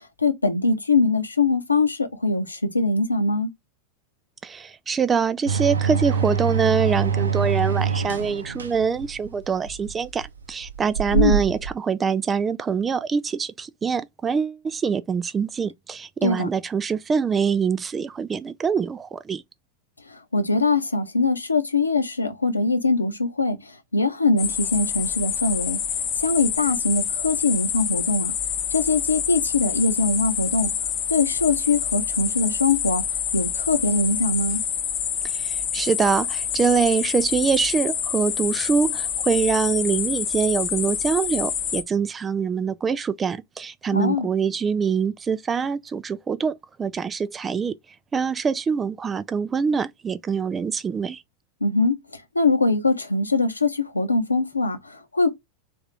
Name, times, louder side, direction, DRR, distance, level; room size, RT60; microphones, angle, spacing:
voice 1, 0.0-3.5 11.1-11.4 16.2-16.5 20.0-28.3 28.7-34.6 43.9-44.3 51.6-55.3, left 3 dB, 80° left, 0.9 m, -22 dB
voice 2, 4.4-19.4 35.2-47.7 48.1-51.2, right 6 dB, 20° right, 0.3 m, -24 dB
sound 1, 5.5-11.7, right 7 dB, 70° right, 0.6 m, -25 dB
sound 2, 24.4-41.8, left 8 dB, 35° left, 0.8 m, -27 dB
3.5 x 3.5 x 3.3 m
figure-of-eight pair, 90°, 0 cm